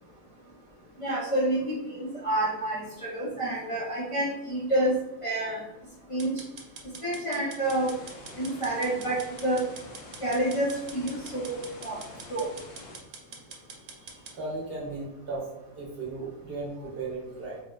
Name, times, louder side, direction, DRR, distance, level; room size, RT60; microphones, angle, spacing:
voice 1, 1.0-5.6 6.1-6.3 7.0-7.9 8.4-9.6 10.2-11.6 11.8-12.0 12.3-12.5, right 1 dB, 35° left, -9 dB, 0.5 m, -28 dB
sound 1, 6.2-14.4, right 4 dB, 80° right, 1.0 m, -45 dB
sound 2, 7.6-13.0, left 2 dB, 65° left, 0.8 m, -46 dB
voice 2, 13.9-15.5 15.8-17.6, right 3 dB, 55° right, -4 dB, 0.9 m, -36 dB
4.0 x 2.0 x 2.2 m, 0.93 s
omnidirectional pair, 1.3 m